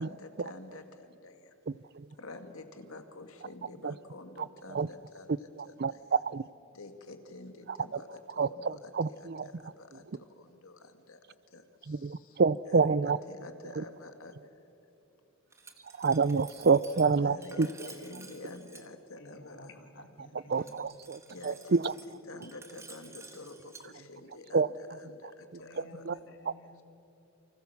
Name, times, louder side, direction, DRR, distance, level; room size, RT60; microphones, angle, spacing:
voice 1, 0.0-1.5 2.2-6.1 6.7-12.4 12.7-14.6 17.2-19.8 20.4-20.5 21.3-21.9 22.3-26.0, left 2 dB, 85° left, 7 dB, 2.2 m, -49 dB
voice 2, 5.8-6.4 8.4-9.5 11.9-13.2 13.8-13.9 16.0-17.7 20.5-21.2 21.4-21.9 24.5-24.7 26.1-26.2, right 4 dB, 50° right, 19 dB, 0.5 m, -27 dB
Glass, 15.5-18.9 20.5-23.9, right 4 dB, 15° right, 1.6 m, -52 dB
voice 3, 19.2-20.7 25.6-26.8, left 2 dB, 60° left, 4 dB, 2.8 m, -52 dB
29.5 x 25.0 x 7.1 m, 2.9 s
head